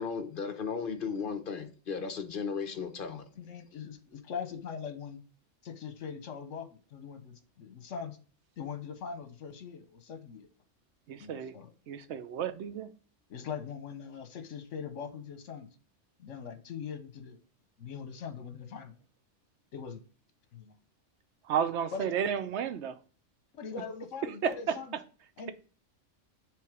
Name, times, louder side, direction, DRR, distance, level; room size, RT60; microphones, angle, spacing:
voice 1, 0.0-3.2, left 6 dB, 50° left, 0.9 m, -35 dB
voice 2, 3.4-5.2 5.6-8.2 8.6-10.5 11.2-11.7 13.3-15.7 16.2-17.4 17.8-18.9 19.7-20.0 21.9-22.1 23.5-24.9 25.4-25.5, left 6 dB, 70° left, 1.2 m, -41 dB
voice 3, 11.1-11.5 11.9-12.9 21.5-23.0 24.4-24.8, right 8 dB, 65° right, 0.9 m, -32 dB
6.9 x 3.3 x 4.9 m
omnidirectional pair, 1.3 m